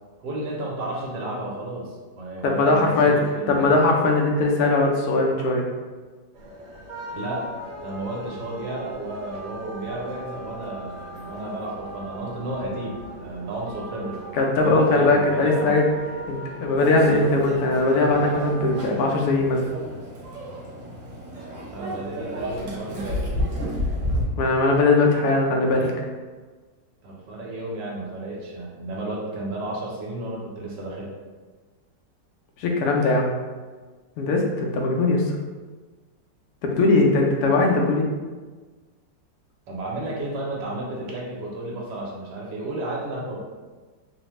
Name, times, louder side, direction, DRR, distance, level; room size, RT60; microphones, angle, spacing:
voice 1, 0.2-3.7 7.1-7.4 7.8-14.2 14.6-15.7 21.7-23.3 27.0-31.1 39.7-43.4, right 1 dB, 75° right, -3 dB, 1.3 m, -32 dB
voice 2, 2.4-3.2 3.5-5.6 14.4-15.8 16.3-19.6 24.4-25.9 32.6-33.3 34.2-35.4 36.6-38.1, left 2 dB, 75° left, 0 dB, 0.9 m, -20 dB
sound 1, 6.3-18.8, right 1 dB, 90° right, 1.3 m, -40 dB
Microwave oven, 16.8-24.2, left 1 dB, 55° right, 0.9 m, -31 dB
3.2 x 2.1 x 3.0 m, 1.4 s
omnidirectional pair, 2.0 m